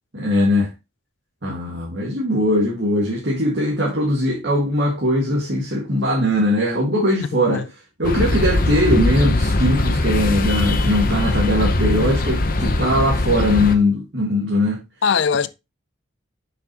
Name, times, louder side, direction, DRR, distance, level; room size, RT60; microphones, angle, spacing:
voice 1, 0.1-0.7 1.4-7.6 8.0-14.8, left 1 dB, 60° right, 2.0 m, -20 dB
voice 2, 7.2-7.7 15.0-15.5, left 6 dB, 75° left, 0.5 m, -21 dB
sound 1, 8.0-13.8, left 2 dB, 45° left, 0.9 m, -20 dB
7.1 x 6.0 x 3.0 m
head